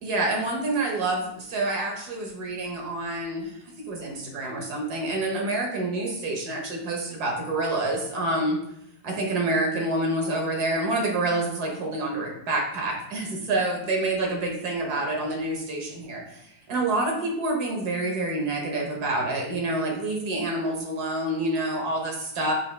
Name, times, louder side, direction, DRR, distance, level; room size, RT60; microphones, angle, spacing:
voice 1, 0.0-3.5 3.8-8.6 9.0-16.4 16.7-22.5, right 2 dB, 70° right, 0 dB, 1.6 m, -27 dB
5.5 x 2.7 x 3.2 m, 0.76 s
omnidirectional pair, 1.8 m